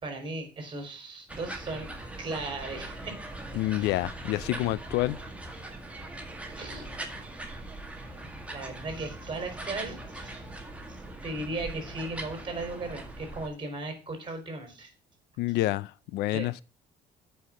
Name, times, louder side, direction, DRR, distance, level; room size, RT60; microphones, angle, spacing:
voice 1, 0.0-1.9 2.2-3.2 3.7-3.9 6.6-6.9 8.5-10.3 11.2-14.9 16.3-16.5, right 2 dB, 30° right, 4.1 m, -36 dB
sound 1, 1.3-13.5, right 2 dB, 5° right, 1.9 m, -41 dB
voice 2, 3.5-5.2 15.4-16.6, left 17 dB, 85° left, 0.4 m, -28 dB
8.5 x 5.6 x 7.6 m
cardioid pair, 110°, 17 cm